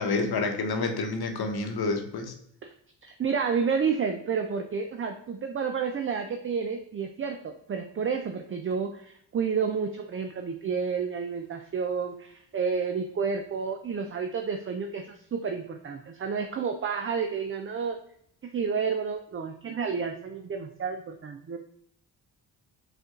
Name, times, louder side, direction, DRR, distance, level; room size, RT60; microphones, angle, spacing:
voice 1, 0.0-2.3, left 3 dB, 50° left, 5 dB, 1.0 m, -28 dB
voice 2, 3.0-18.0 18.5-21.6, right 6 dB, 25° right, 5 dB, 0.5 m, -30 dB
5.0 x 2.6 x 3.7 m, 0.69 s
hypercardioid pair, 45°, 48 cm